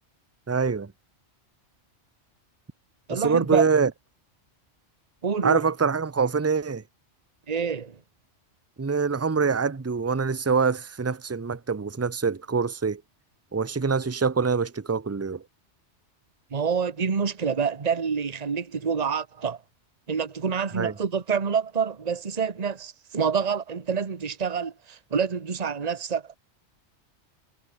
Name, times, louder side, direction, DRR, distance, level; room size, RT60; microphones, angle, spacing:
voice 1, 0.5-0.9 3.1-3.9 5.4-6.8 8.8-13.0 13.5-15.4 20.7-20.9, right 5 dB, 20° right, 0.5 m, -25 dB
voice 2, 3.1-3.6 5.2-5.7 7.5-8.0 16.5-19.6 20.1-26.4, right 6 dB, 35° right, 1.2 m, -27 dB
omnidirectional pair, 1.2 m